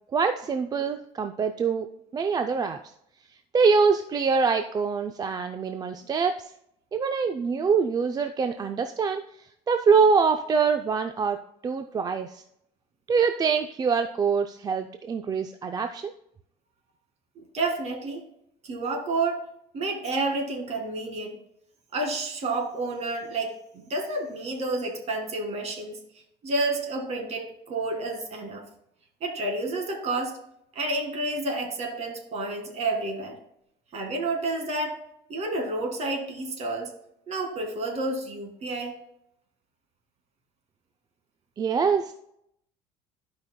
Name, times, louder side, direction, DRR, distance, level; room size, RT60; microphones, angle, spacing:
voice 1, 0.1-1.9 2.1-2.8 3.5-6.5 6.9-9.2 9.7-11.4 11.6-12.4 13.1-16.1 41.6-42.1, right 5 dB, 25° right, 7 dB, 0.4 m, -24 dB
voice 2, 17.4-18.2 18.6-19.5 19.7-21.4 21.9-26.0 26.4-28.6 29.2-30.3 30.8-33.4 33.9-35.0 35.3-36.9 37.3-39.0, right 2 dB, 45° right, 3 dB, 1.9 m, -30 dB
14.0 x 5.2 x 2.2 m, 0.76 s
cardioid pair, 110°, 15 cm